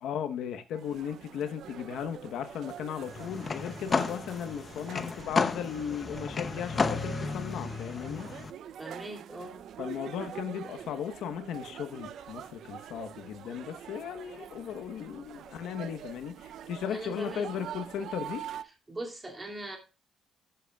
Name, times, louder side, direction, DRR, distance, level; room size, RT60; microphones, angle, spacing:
voice 1, 0.0-8.3 9.8-18.4, left 8 dB, 75° left, 1.1 m, -36 dB
sound 1, 0.7-18.6, right 10 dB, 65° right, 0.6 m, -45 dB
sound 2, 3.0-8.5, left 4 dB, 25° left, 0.7 m, -33 dB
voice 2, 8.8-9.6 16.9-17.5 18.9-19.8, right 2 dB, 15° right, 2.7 m, -40 dB
14.0 x 7.9 x 2.3 m
cardioid pair, 155°, 0 cm